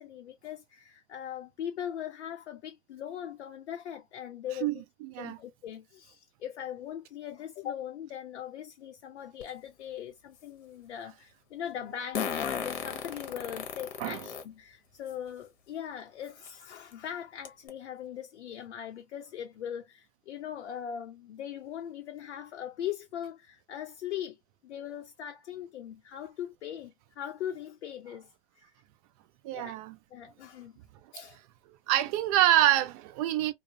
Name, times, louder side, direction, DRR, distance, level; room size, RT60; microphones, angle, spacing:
voice 1, 0.0-4.8 5.2-24.4 24.6-28.7 29.5-29.8 30.1-30.8 31.1-31.4, left 10 dB, 75° left, 0.5 m, -40 dB
voice 2, 5.0-5.4 14.0-14.2 29.4-30.0 31.9-33.5, right 13 dB, 35° right, 0.4 m, -26 dB
Fart, 9.4-9.5 12.1-14.4 15.1-15.2 16.5-16.6 16.9-17.0 17.4-17.7, left 7 dB, 45° left, 0.8 m, -34 dB
2.3 x 2.0 x 2.6 m
hypercardioid pair, 110°, 34 cm